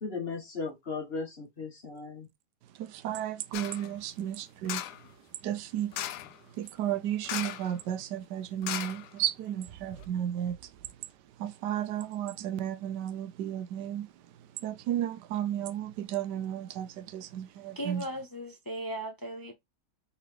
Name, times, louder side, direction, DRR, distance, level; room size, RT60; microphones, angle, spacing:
voice 1, 0.0-2.3, left 4 dB, 40° left, 1.2 m, -36 dB
voice 2, 2.8-4.8 5.4-5.9 6.6-10.5 11.4-14.1 14.6-18.0, right 11 dB, 90° right, 1.3 m, -33 dB
sound 1, 3.5-3.9 4.7-5.1 5.9-6.4 7.2-7.8 8.0-8.1 8.6-9.5 10.0-10.1, left 12 dB, 75° left, 1.1 m, -37 dB
voice 3, 17.8-19.5, right 1 dB, 20° left, 0.5 m, -37 dB
3.9 x 3.8 x 3.2 m
omnidirectional pair, 1.8 m